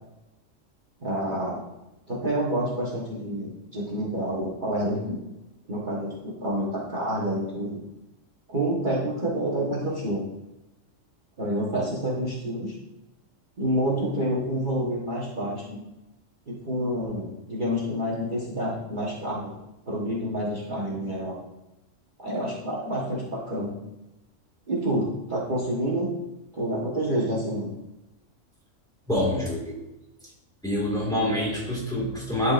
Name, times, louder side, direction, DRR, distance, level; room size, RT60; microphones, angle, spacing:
voice 1, 1.0-1.6 2.1-5.2 5.7-7.8 8.5-10.2 11.4-12.7 13.6-15.8 16.5-19.6 19.9-21.4 22.2-23.7 24.7-26.1 26.5-27.7, right 1 dB, 40° right, -6 dB, 1.4 m, -28 dB
voice 2, 29.1-29.8 30.6-32.5, left 1 dB, 5° left, -4 dB, 2.0 m, -26 dB
12.0 x 4.6 x 2.6 m, 0.95 s
omnidirectional pair, 1.3 m